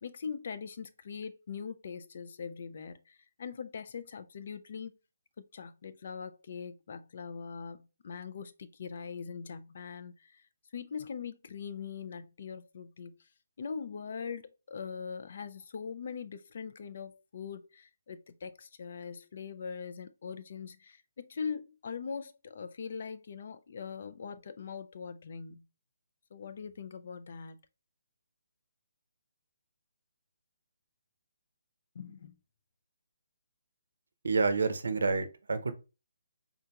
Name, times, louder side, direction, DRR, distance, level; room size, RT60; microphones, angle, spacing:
voice 1, 0.0-4.9 5.5-10.4 10.7-13.3 13.6-25.6 26.3-27.6 31.9-32.4, left 6 dB, 55° left, 0.4 m, -42 dB
voice 2, 34.2-35.7, right 4 dB, 75° right, 0.5 m, -28 dB
3.6 x 2.8 x 2.2 m
hypercardioid pair, 150°, 0 cm